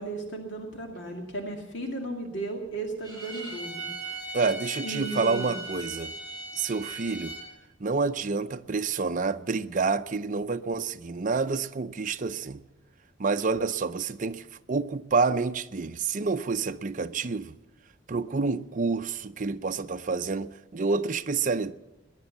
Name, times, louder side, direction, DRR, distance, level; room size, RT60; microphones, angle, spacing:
voice 1, 0.0-4.4 4.8-5.6, right 2 dB, 65° left, 2.3 m, -35 dB
Bowed string instrument, 3.0-7.5, right 2 dB, 25° left, 7.4 m, -38 dB
voice 2, 4.3-6.1 6.5-7.3 7.8-12.6 13.2-17.5 18.1-21.7, right 4 dB, 40° right, 0.6 m, -28 dB
19.0 x 10.5 x 7.2 m
head